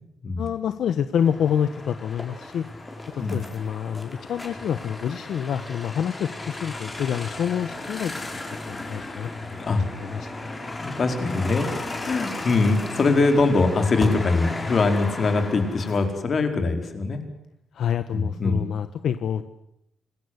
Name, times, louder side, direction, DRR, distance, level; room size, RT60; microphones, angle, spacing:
voice 1, 0.4-2.7 3.1-8.4 8.7-9.6 9.9-10.3 17.7-19.4, left 8 dB, 70° left, 11 dB, 1.2 m, -27 dB
sound 1, 1.2-16.1, left 2 dB, 15° left, 5.3 m, -35 dB
voice 2, 10.8-11.7 12.0-17.2 18.1-18.6, left 3 dB, 40° left, 6 dB, 4.7 m, -22 dB
27.5 x 21.0 x 8.1 m, 0.81 s
wide cardioid pair, 150°, 0 cm